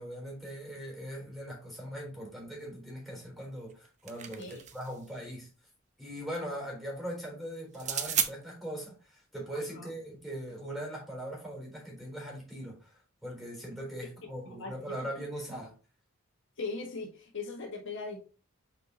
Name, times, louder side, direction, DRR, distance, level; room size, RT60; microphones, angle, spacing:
voice 1, 0.0-5.5 6.0-15.7, equal, ahead, 3.9 m, -40 dB
sound 1, 3.7-5.0 7.7-8.3, right 9 dB, 35° right, 0.8 m, -33 dB
voice 2, 14.4-14.9 16.6-18.2, left 3 dB, 60° left, 1.7 m, -39 dB
8.2 x 4.6 x 3.0 m
head